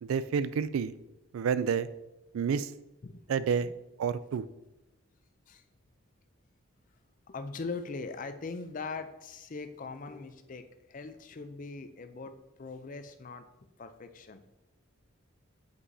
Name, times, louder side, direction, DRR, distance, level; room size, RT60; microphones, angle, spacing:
voice 1, 0.0-0.9 1.3-1.9 2.3-2.7 3.3-3.7 4.0-4.4, right 6 dB, 75° right, 15 dB, 0.3 m, -29 dB
voice 2, 7.3-13.5 13.8-14.4, left 4 dB, 40° left, 9 dB, 0.4 m, -41 dB
7.7 x 5.6 x 2.7 m, 0.96 s
head